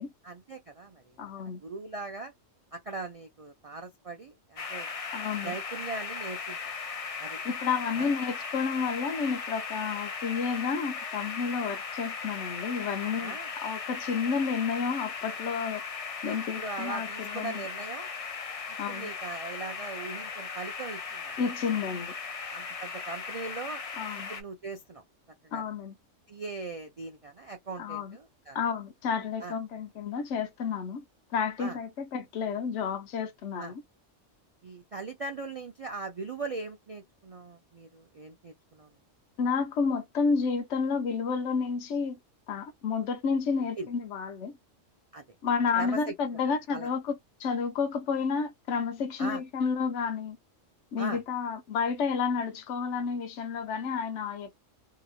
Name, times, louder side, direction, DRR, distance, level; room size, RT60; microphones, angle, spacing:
voice 1, 0.2-1.3 1.6-2.3 2.7-4.9 5.4-6.6 7.2-7.4 7.9-8.1 13.0-13.5 16.3-18.1 18.7-21.4 22.5-23.8 24.3-25.0 25.4-25.6 26.3-28.6 29.4-29.6 31.6-31.8 33.6-33.8 34.6-38.9 43.8-43.9 45.1-45.2 45.8-46.1 46.7-46.9 49.2-49.4 51.0-51.2, right 3 dB, 60° right, 0.3 m, -40 dB
voice 2, 1.2-1.6 5.1-5.5 7.4-15.8 16.2-17.6 18.8-19.1 21.4-22.1 24.0-24.3 25.5-25.9 27.8-28.2 28.5-31.0 31.3-33.8 39.4-42.2 42.5-44.5 45.4-47.1 47.4-50.4 50.9-54.6, left 5 dB, 70° left, 1.0 m, -30 dB
sound 1, 4.6-24.4, left 5 dB, 45° left, 0.5 m, -37 dB
2.9 x 2.8 x 2.3 m
omnidirectional pair, 1.3 m